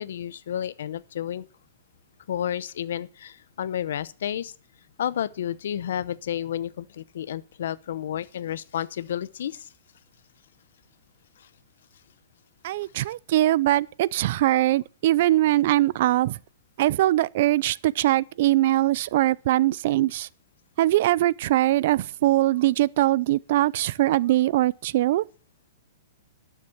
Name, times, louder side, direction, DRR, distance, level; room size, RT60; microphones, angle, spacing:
voice 1, 0.0-1.4 2.3-4.5 5.0-9.7, left 10 dB, 75° left, 0.8 m, -31 dB
voice 2, 12.6-16.4 16.8-20.3 20.8-25.2, right 15 dB, 60° right, 0.5 m, -22 dB
12.0 x 7.2 x 7.1 m
hypercardioid pair, 140°, 0 cm